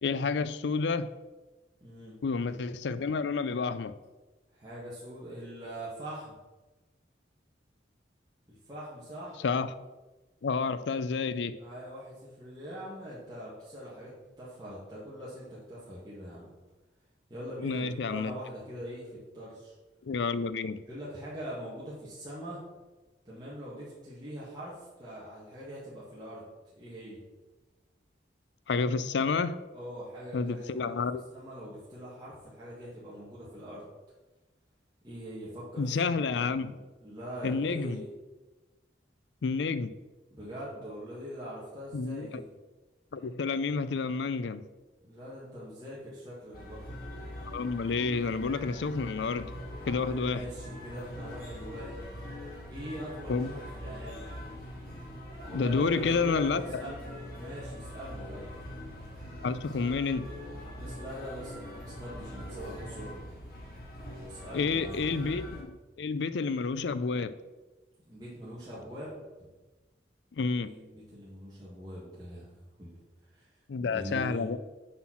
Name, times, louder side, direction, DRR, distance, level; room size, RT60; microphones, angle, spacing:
voice 1, 0.0-1.1 2.2-3.9 9.4-9.7 10.4-11.6 17.6-18.3 20.0-20.8 28.7-29.6 30.3-31.2 35.8-36.8 37.4-38.0 39.4-39.9 41.9-42.4 43.1-44.6 47.5-49.5 49.9-50.5 53.3-53.6 55.5-56.8 59.4-60.4 64.5-67.4 70.4-70.7 73.7-74.6, left 4 dB, 80° left, 14 dB, 0.4 m, -30 dB
voice 2, 1.8-2.2 4.5-6.4 8.7-9.4 11.6-14.1 14.4-16.5 17.3-19.8 20.8-22.6 23.3-26.4 26.8-27.2 29.7-31.0 31.3-33.8 35.0-36.1 36.6-36.7 37.0-38.1 40.3-42.4 45.0-46.8 49.8-52.0 52.7-54.3 55.5-58.5 60.5-63.1 64.2-65.0 68.1-69.2 70.6-72.5 72.8-73.0 73.3-73.5 73.8-74.5, equal, 20° right, -9 dB, 1.7 m, -42 dB
sound 1, 46.5-65.6, left 1 dB, 55° left, 2.3 m, -43 dB
7.4 x 4.4 x 5.8 m, 1.2 s
head